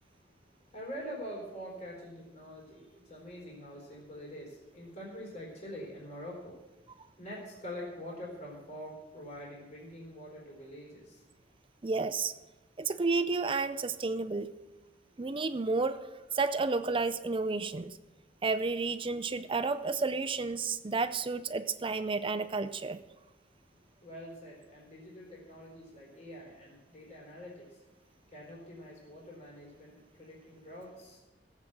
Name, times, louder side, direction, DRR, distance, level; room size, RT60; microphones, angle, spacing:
voice 1, 0.0-11.3 24.0-31.2, equal, 40° left, -3 dB, 4.1 m, -45 dB
voice 2, 11.8-12.3 12.8-14.5 15.2-16.0 16.3-18.0 18.4-23.0, right 4 dB, 30° right, 12 dB, 0.5 m, -31 dB
16.0 x 7.4 x 7.8 m, 1.1 s
head